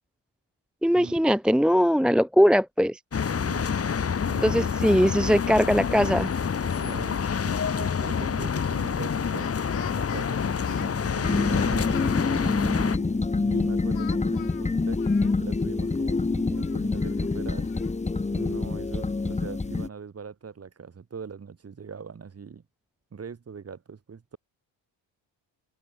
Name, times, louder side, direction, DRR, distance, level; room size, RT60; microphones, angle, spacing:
voice 1, 0.8-3.0 4.4-6.3, equal, ahead, 0.5 m, -21 dB
sound 1, 3.1-13.0, left 6 dB, 30° left, 2.2 m, -27 dB
voice 2, 3.3-3.7 4.2-4.7 6.6-11.9 12.6-17.7 18.3-22.6 23.1-24.4, right 6 dB, 30° right, 7.0 m, -41 dB
Speech, 9.2-12.2 13.9-15.7 16.0-16.1 16.5-17.9, left 14 dB, 70° left, 2.8 m, -46 dB
sound 2, 11.2-19.9, left 3 dB, 15° left, 2.1 m, -26 dB
cardioid pair, 135°, 47 cm